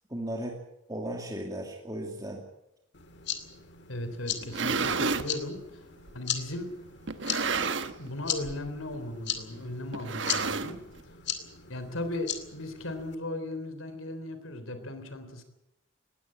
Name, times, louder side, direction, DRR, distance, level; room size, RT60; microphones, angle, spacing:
voice 1, 0.1-0.6 0.9-2.4, right 1 dB, 15° right, 1 dB, 2.4 m, -36 dB
sound 1, 2.9-13.1, left 9 dB, 55° left, 2.4 m, -38 dB
voice 2, 3.9-5.8 6.1-6.7 8.0-10.8 11.7-15.4, left 1 dB, 75° left, 9 dB, 3.5 m, -37 dB
sound 2, 4.3-5.3 6.1-6.2 7.1-8.1 8.4-8.7 8.9-9.0 9.9-11.0, right 4 dB, 60° right, 1.3 m, -30 dB
20.0 x 17.0 x 8.7 m, 0.84 s
head